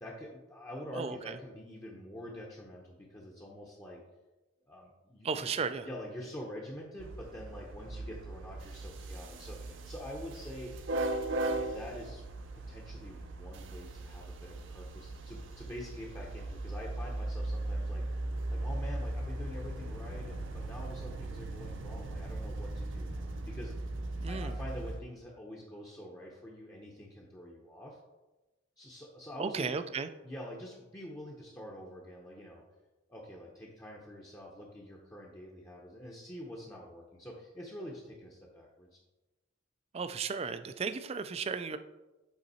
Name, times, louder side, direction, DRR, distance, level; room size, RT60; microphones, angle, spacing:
voice 1, 0.0-4.0 4.7-5.5 5.8-10.7 11.5-12.2 12.7-18.2 18.5-23.9 24.3-28.0 28.8-29.7 30.2-32.6 33.1-39.0, equal, 15° left, -3 dB, 0.7 m, -46 dB
voice 2, 1.0-1.4 5.2-5.9 24.2-24.5 29.4-30.1 39.9-41.8, right 5 dB, 30° right, 11 dB, 0.3 m, -35 dB
sound 1, 7.0-25.0, right 2 dB, 65° right, 0.6 m, -38 dB
8.1 x 3.9 x 4.1 m, 1.1 s
head